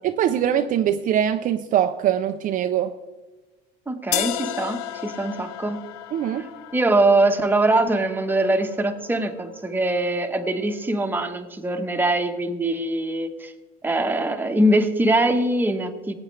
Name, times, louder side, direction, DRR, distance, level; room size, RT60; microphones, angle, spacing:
voice 1, 0.0-2.9 6.1-6.5, right 10 dB, 45° right, 0.5 m, -22 dB
voice 2, 3.9-5.8 6.7-13.5 13.8-16.1, right 1 dB, 10° right, 1.2 m, -22 dB
sound 1, 4.1-10.1, left 14 dB, 90° left, 0.6 m, -34 dB
18.0 x 8.8 x 3.3 m
supercardioid pair, 120°, 19 cm